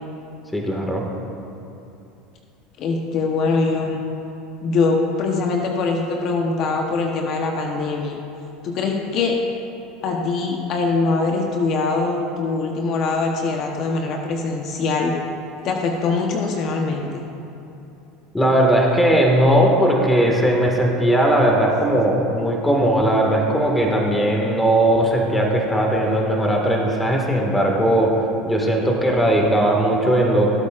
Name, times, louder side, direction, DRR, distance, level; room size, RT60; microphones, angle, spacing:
voice 1, 0.5-1.0 18.3-28.1 28.4-30.6, right 1 dB, 10° left, 0 dB, 1.8 m, -18 dB
voice 2, 2.8-4.0 4.6-8.2 8.6-9.3 10.0-15.1 15.6-17.1, left 3 dB, 55° left, 1 dB, 1.0 m, -22 dB
17.0 x 8.5 x 2.5 m, 2.9 s
hypercardioid pair, 95°, 0 cm